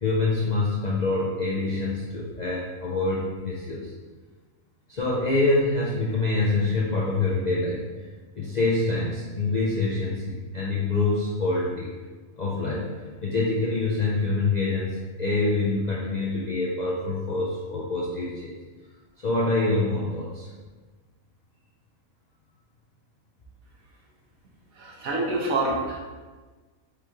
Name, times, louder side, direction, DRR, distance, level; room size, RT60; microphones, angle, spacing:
voice 1, 0.0-3.9 4.9-8.1 8.4-11.9 12.4-12.9 13.2-18.5 19.2-20.5, left 2 dB, 55° left, -5 dB, 0.4 m, -26 dB
voice 2, 24.8-26.0, right 2 dB, 70° right, -2 dB, 1.4 m, -27 dB
4.8 x 3.0 x 3.6 m, 1.3 s
omnidirectional pair, 1.5 m